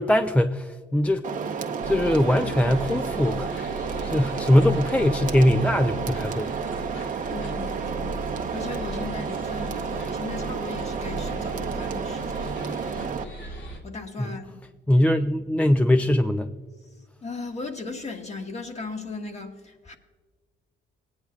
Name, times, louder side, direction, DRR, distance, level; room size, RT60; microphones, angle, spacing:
voice 1, 0.0-1.6 1.9-3.5 4.1-6.5 14.2-14.4 14.9-16.5, left 1 dB, 5° left, 8 dB, 0.4 m, -21 dB
sound 1, 1.2-13.2, right 6 dB, 40° right, 0.8 m, -31 dB
sound 2, 1.8-13.8, equal, 80° left, 2.5 m, -37 dB
voice 2, 7.3-8.2 8.5-12.6 13.8-14.6 17.2-20.0, left 3 dB, 35° left, 4 dB, 1.5 m, -37 dB
19.0 x 9.5 x 2.3 m, 1.4 s
cardioid pair, 90°, 20 cm